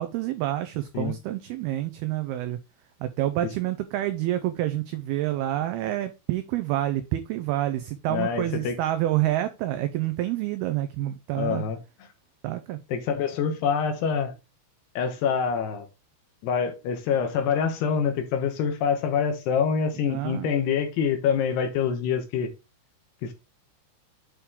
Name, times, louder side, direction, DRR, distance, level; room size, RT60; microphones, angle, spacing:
voice 1, 0.0-2.6 3.0-11.6 12.4-12.8 20.1-20.5, right 14 dB, 85° right, 2.2 m, -28 dB
voice 2, 8.1-8.8 11.4-11.8 12.9-14.3 15.0-15.9 16.4-22.5 23.2-23.3, left 7 dB, 70° left, 3.0 m, -26 dB
8.6 x 4.4 x 3.7 m
omnidirectional pair, 5.2 m